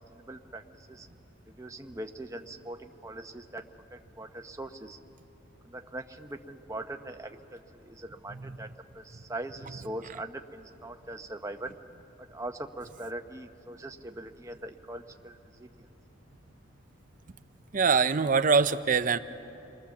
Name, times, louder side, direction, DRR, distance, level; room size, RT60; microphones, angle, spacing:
voice 1, 0.1-1.1 1.6-3.6 3.9-5.0 5.6-8.7 8.9-11.8 12.3-15.9, right 1 dB, 15° right, 5 dB, 0.9 m, -41 dB
voice 2, 17.7-19.2, right 5 dB, 40° right, 12 dB, 0.6 m, -23 dB
29.5 x 21.0 x 7.2 m, 2.9 s
head